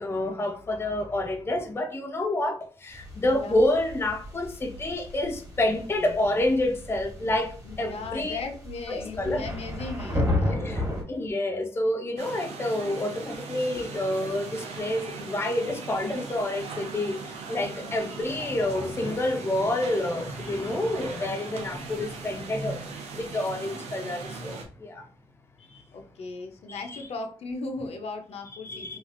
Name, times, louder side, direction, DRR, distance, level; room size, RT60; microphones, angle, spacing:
voice 1, 0.0-8.4 8.9-9.4 10.5-25.0 26.7-27.0 28.6-29.0, left 1 dB, 20° left, 0.4 m, -28 dB
sound 1, 2.9-11.0, left 1 dB, 30° right, 1.3 m, -33 dB
voice 2, 3.3-3.6 7.6-10.7 13.7-13.8 17.6-18.0 24.4-24.5 25.6-29.0, left 3 dB, 70° left, 0.6 m, -37 dB
sound 2, 12.2-24.7, right 4 dB, 85° right, 0.6 m, -39 dB
3.3 x 2.4 x 2.5 m
cardioid pair, 90°, 11 cm